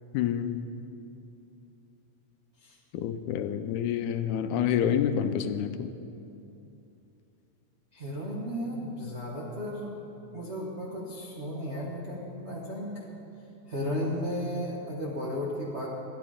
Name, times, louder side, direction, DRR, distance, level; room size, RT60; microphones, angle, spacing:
voice 1, 0.1-0.6 2.9-5.9, left 9 dB, 85° left, 9 dB, 2.0 m, -28 dB
voice 2, 7.9-9.9 10.3-13.1 13.7-15.9, equal, 60° right, -5 dB, 0.7 m, -34 dB
13.5 x 11.0 x 5.0 m, 2.7 s
omnidirectional pair, 3.6 m